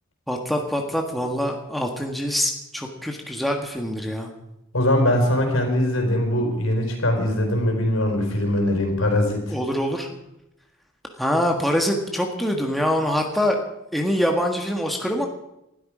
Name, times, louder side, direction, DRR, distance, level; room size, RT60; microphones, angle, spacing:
voice 1, 0.3-4.3 9.5-10.1 11.2-13.6 13.9-15.3, equal, ahead, 1 dB, 1.5 m, -24 dB
voice 2, 4.7-9.4, left 1 dB, 75° left, 3 dB, 4.4 m, -21 dB
20.0 x 12.5 x 5.0 m, 0.86 s
head